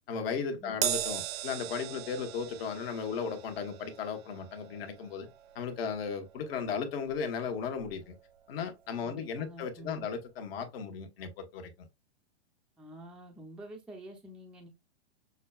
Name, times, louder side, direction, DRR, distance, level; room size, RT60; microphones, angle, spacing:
voice 1, 0.1-5.3 5.5-8.1 8.5-11.9, left 6 dB, 60° left, 1.3 m, -36 dB
Crash cymbal, 0.8-7.4 7.8-8.0 9.0-9.1, right 11 dB, 65° right, 0.9 m, -39 dB
voice 2, 9.0-10.1 12.8-14.7, right 1 dB, 5° right, 0.6 m, -47 dB
6.4 x 2.3 x 2.3 m
hypercardioid pair, 130°, 34 cm